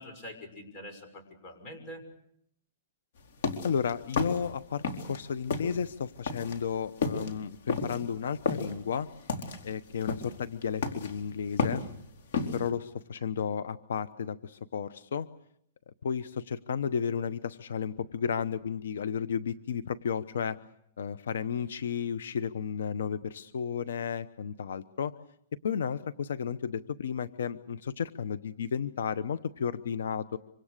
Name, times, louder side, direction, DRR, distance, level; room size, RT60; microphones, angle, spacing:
voice 1, 0.0-2.0, equal, 30° left, 6 dB, 6.2 m, -45 dB
sound 1, 3.2-5.2 5.5-12.7, left 4 dB, 65° left, 4.2 m, -32 dB
voice 2, 3.6-9.1 9.6-11.8 12.5-15.3 15.9-20.6 21.0-25.1 25.6-30.4, left 7 dB, 80° left, 14 dB, 0.9 m, -33 dB
26.0 x 26.0 x 6.7 m, 0.71 s
hypercardioid pair, 155°, 0 cm